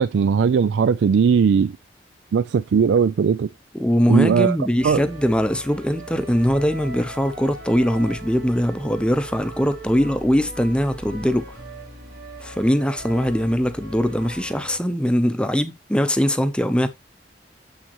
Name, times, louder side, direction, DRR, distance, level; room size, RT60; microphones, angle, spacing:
voice 1, 0.0-1.8 2.3-3.5 4.1-4.6 4.8-5.0, right 6 dB, 85° right, 0.3 m, -18 dB
voice 2, 3.7-11.5 12.4-16.9, equal, 5° left, 0.7 m, -21 dB
sound 1, 4.8-14.8, right 1 dB, 60° right, 2.3 m, -39 dB
7.3 x 6.3 x 3.0 m
head